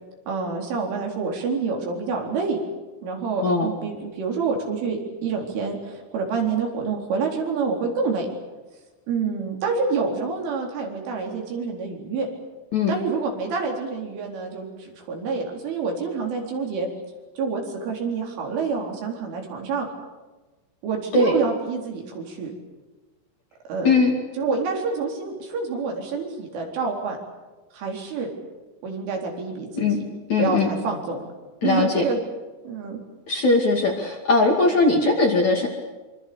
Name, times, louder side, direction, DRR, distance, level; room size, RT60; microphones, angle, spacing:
voice 1, 0.3-2.6 3.0-8.3 9.1-12.3 12.9-16.9 17.4-19.9 20.8-22.5 23.7-24.0 24.4-27.2 27.7-28.3 28.8-30.0 30.4-31.3 31.6-32.2 32.6-33.0, right 4 dB, 70° right, 1 dB, 6.6 m, -27 dB
voice 2, 30.3-30.7 31.6-32.0 33.3-35.7, left 3 dB, 45° left, 1 dB, 3.0 m, -20 dB
25.5 x 25.5 x 7.0 m, 1.2 s
omnidirectional pair, 5.9 m